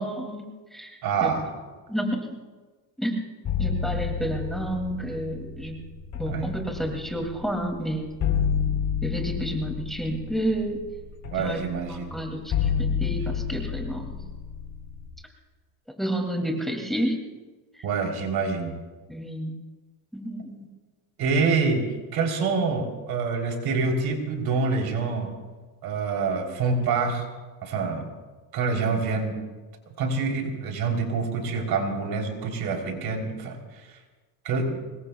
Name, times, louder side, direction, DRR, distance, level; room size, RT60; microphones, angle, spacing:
voice 1, 0.0-1.3 1.9-2.3 3.0-3.2 3.6-5.8 6.2-8.1 9.0-10.8 11.4-11.6 11.9-14.2 16.0-17.2 17.8-17.9 19.1-19.5 20.1-20.7, right 1 dB, ahead, 2 dB, 2.4 m, -30 dB
voice 2, 1.0-1.5 6.3-6.5 11.3-12.1 17.8-18.7 21.2-21.8 22.1-25.3 25.8-27.3 27.6-28.0 28.5-29.4 30.0-33.6 34.4-34.8, right 4 dB, 65° right, 2 dB, 3.4 m, -26 dB
sound 1, 3.4-15.1, left 7 dB, 45° left, 3.7 m, -30 dB
25.0 x 21.0 x 2.3 m, 1.3 s
cardioid pair, 105°, 41 cm